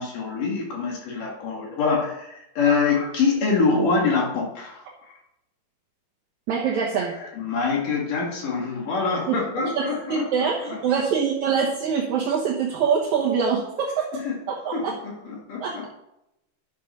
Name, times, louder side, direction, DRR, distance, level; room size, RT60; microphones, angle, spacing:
voice 1, 0.0-5.2 7.0-10.8 14.1-14.3 14.7-15.9, left 4 dB, 55° left, -1 dB, 3.1 m, -25 dB
voice 2, 6.5-7.1 9.3-14.2 14.5-14.9 15.6-15.9, right 6 dB, 65° right, -2 dB, 1.9 m, -24 dB
11.0 x 7.3 x 5.4 m, 0.88 s
omnidirectional pair, 4.8 m